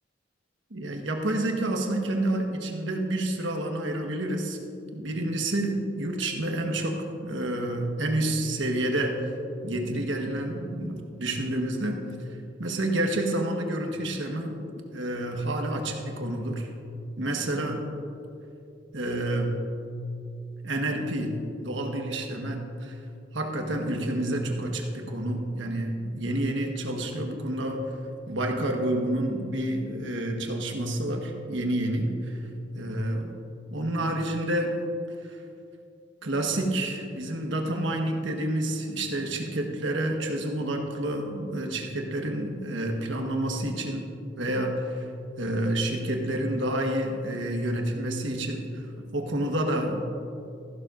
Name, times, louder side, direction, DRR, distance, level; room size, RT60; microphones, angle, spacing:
voice 1, 0.7-4.6 4.9-9.2 9.6-12.0 12.6-14.6 14.9-16.7 17.2-17.8 18.9-19.6 20.6-23.0 23.3-27.9 28.3-32.4 32.7-33.3 33.7-34.8 35.3-35.4 36.2-44.1 44.4-45.0 45.4-48.8 49.1-50.1, right 1 dB, 80° right, 2 dB, 1.3 m, -29 dB
14.5 x 11.5 x 2.5 m, 2.6 s
head